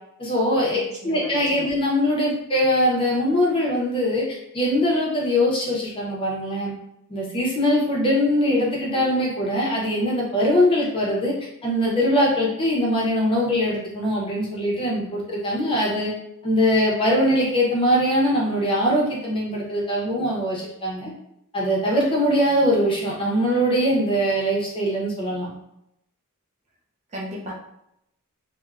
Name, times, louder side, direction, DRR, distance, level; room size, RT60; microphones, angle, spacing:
voice 1, 0.2-6.7 7.1-11.3 11.6-16.1 16.4-21.1 21.5-25.5, equal, 25° left, -3 dB, 0.6 m, -22 dB
voice 2, 0.7-1.7 27.1-27.5, equal, 30° right, -3 dB, 0.5 m, -36 dB
3.2 x 2.1 x 2.3 m, 0.81 s
head